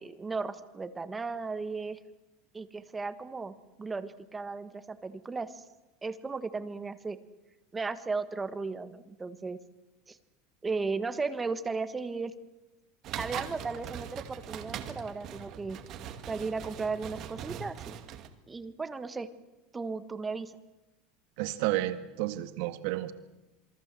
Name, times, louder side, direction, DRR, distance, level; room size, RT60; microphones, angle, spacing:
voice 1, 0.0-2.0 2.5-5.6 6.0-7.2 7.7-9.6 10.1-10.2 10.6-12.3 13.2-15.8 16.3-18.0 18.5-19.3 19.7-20.5, right 4 dB, 15° right, 11 dB, 1.5 m, -35 dB
sound 1, 13.0-18.3, right 9 dB, 40° right, 2.2 m, -41 dB
voice 2, 21.4-23.1, right 16 dB, 65° right, 10 dB, 1.7 m, -31 dB
27.5 x 22.5 x 7.7 m, 1.1 s
supercardioid pair, 155°, 0 cm